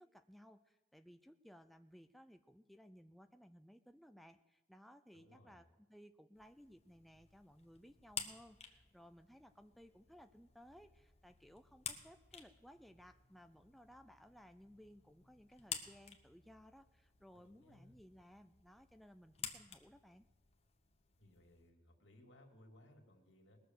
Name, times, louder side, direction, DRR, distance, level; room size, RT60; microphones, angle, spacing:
voice 1, 0.0-20.3, equal, ahead, 8 dB, 0.3 m, -61 dB
voice 2, 5.1-5.6 17.3-18.0 21.2-23.6, left 1 dB, 80° left, 2 dB, 2.3 m, -64 dB
sound 1, 6.3-21.7, left 7 dB, 35° left, 1.1 m, -53 dB
20.0 x 6.8 x 6.4 m, 1.1 s
head